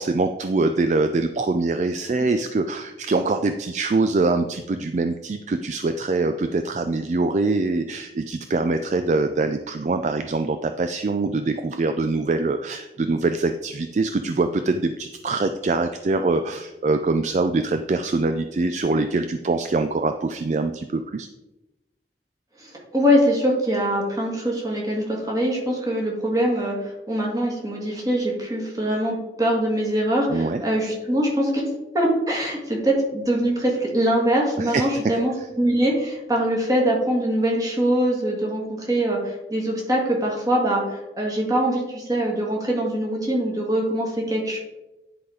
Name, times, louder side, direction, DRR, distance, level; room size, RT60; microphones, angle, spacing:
voice 1, 0.0-21.3 30.3-30.6 34.6-35.1, right 3 dB, 40° right, 8 dB, 0.4 m, -24 dB
voice 2, 22.6-31.7 31.9-44.6, right 1 dB, 20° right, -2 dB, 1.8 m, -23 dB
10.0 x 4.0 x 4.9 m, 1.0 s
head